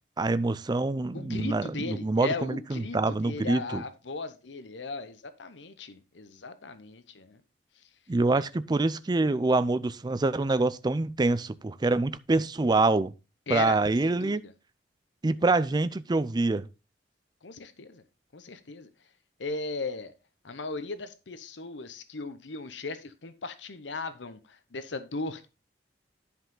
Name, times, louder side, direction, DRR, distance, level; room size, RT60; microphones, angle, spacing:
voice 1, 0.2-3.8 8.1-13.1 13.5-14.4 15.2-16.7, right 2 dB, 25° right, 0.4 m, -26 dB
voice 2, 1.1-7.4 8.3-8.4 13.5-13.8 14.0-14.5 17.4-18.0 18.3-18.9 19.4-20.1 20.4-25.5, left 3 dB, 75° left, 0.8 m, -37 dB
10.5 x 5.5 x 3.8 m
head